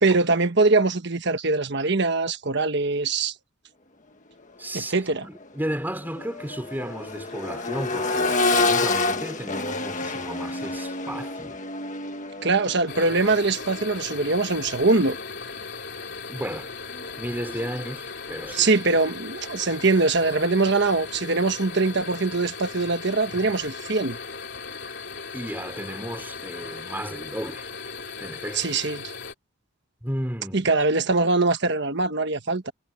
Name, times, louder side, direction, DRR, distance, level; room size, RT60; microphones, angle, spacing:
voice 1, 0.0-3.3 4.7-5.2 12.4-15.2 18.5-24.2 28.5-29.1 30.5-32.7, right 3 dB, 55° right, 1.4 m, -22 dB
voice 2, 4.6-4.9 5.2-11.6 16.3-16.7 17.2-18.7 25.3-27.7 28.2-28.7 30.0-30.7, equal, 10° right, 3.1 m, -34 dB
Accelerating revving vroom, 4.8-4.9 5.4-15.3 17.0-17.1, left 3 dB, 35° left, 1.6 m, -29 dB
sound 1, 12.9-29.3, left 5 dB, 55° left, 3.6 m, -37 dB
head